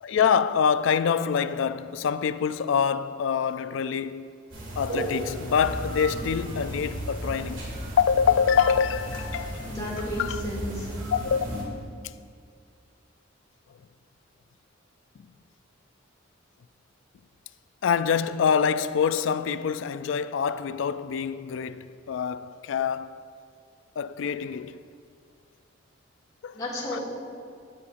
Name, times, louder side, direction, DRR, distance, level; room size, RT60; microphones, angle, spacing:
voice 1, 0.0-4.3 4.8-7.7 8.0-9.7 10.0-10.4 11.1-11.7 17.8-23.3 24.0-24.8 26.4-26.6 26.9-27.0, left 7 dB, 70° left, 0.3 m, -25 dB
sound 1, 4.5-11.6, right 1 dB, 70° right, 2.0 m, -34 dB
voice 2, 9.6-10.9 26.5-27.0, left 1 dB, 20° left, 2.4 m, -33 dB
16.0 x 8.4 x 2.5 m
head